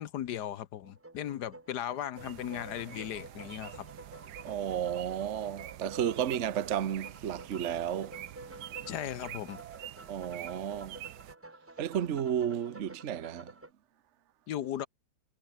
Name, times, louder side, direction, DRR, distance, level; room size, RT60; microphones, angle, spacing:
voice 1, 0.0-3.9 8.9-9.6 14.5-14.9, left 11 dB, 70° left, 1.4 m, -37 dB
sound 1, 0.8-13.7, right 2 dB, 15° right, 0.5 m, -50 dB
sound 2, 2.2-11.4, right 13 dB, 70° right, 1.3 m, -47 dB
voice 2, 4.4-8.9 10.1-11.0 11.8-13.5, right 9 dB, 50° right, 1.1 m, -33 dB
omnidirectional pair, 1.9 m